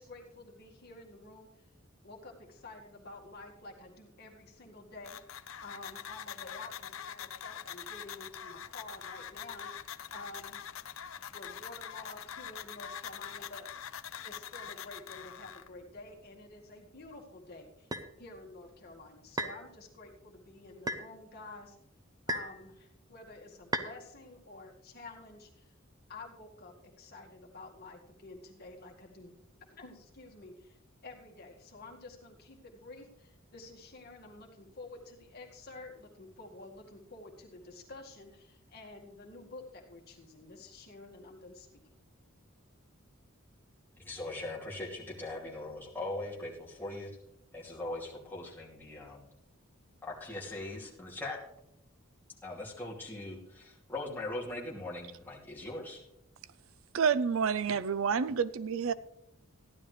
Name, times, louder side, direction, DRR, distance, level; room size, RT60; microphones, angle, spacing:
voice 1, 0.0-1.5 2.0-5.2 5.6-10.7 11.3-13.7 14.2-17.9 18.2-21.8 22.3-25.7 26.1-29.3 29.7-41.7, left 2 dB, 50° left, 0 dB, 2.0 m, -50 dB
sound 1, 5.0-15.7, left 9 dB, 80° left, 0.6 m, -44 dB
sound 2, 17.9-18.1 19.4-19.6 20.9-21.1 22.3-22.6 23.7-23.9, right 1 dB, 20° right, 0.7 m, -34 dB
voice 2, 44.0-47.1 47.5-49.3 50.0-51.4 52.4-56.0, left 2 dB, 10° left, -4 dB, 2.7 m, -40 dB
voice 3, 56.9-58.9, right 6 dB, 75° right, 16 dB, 0.5 m, -29 dB
15.0 x 11.0 x 3.3 m, 0.78 s
head